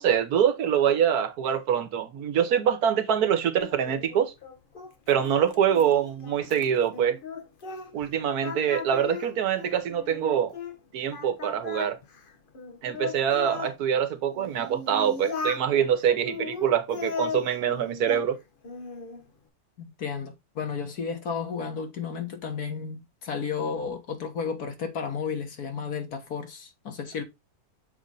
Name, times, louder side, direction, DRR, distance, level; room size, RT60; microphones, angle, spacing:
voice 1, 0.0-4.3 5.1-7.2 7.9-10.5 10.9-12.0 12.8-18.4, right 8 dB, 80° right, 1.4 m, -24 dB
Singing, 3.6-8.1 8.4-10.8 11.1-13.7 14.3-15.7 16.2-18.3 18.6-19.2, left 4 dB, 40° left, 1.0 m, -37 dB
voice 2, 19.8-27.2, left 6 dB, 85° left, 1.9 m, -33 dB
6.9 x 4.2 x 3.8 m
omnidirectional pair, 1.6 m